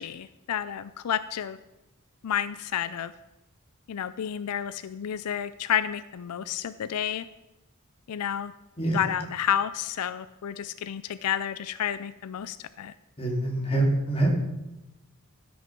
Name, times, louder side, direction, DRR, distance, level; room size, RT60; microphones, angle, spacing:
voice 1, 0.0-1.6 2.2-3.1 3.9-7.3 8.1-8.5 8.9-12.9, left 9 dB, 85° left, 14 dB, 0.4 m, -30 dB
voice 2, 13.2-14.3, right 2 dB, 25° left, 0 dB, 2.3 m, -25 dB
12.5 x 6.4 x 6.0 m, 0.95 s
head